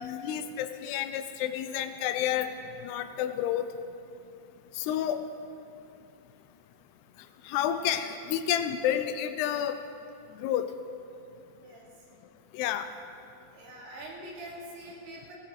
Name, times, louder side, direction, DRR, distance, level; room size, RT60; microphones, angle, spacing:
voice 1, 0.0-2.5 2.8-3.7 4.7-5.3 7.4-9.8 10.4-10.7 12.5-12.9, left 10 dB, 90° left, 9 dB, 2.7 m, -30 dB
voice 2, 13.5-15.3, right 1 dB, 80° right, -4 dB, 4.8 m, -44 dB
18.5 x 16.0 x 4.2 m, 2.5 s
omnidirectional pair, 4.6 m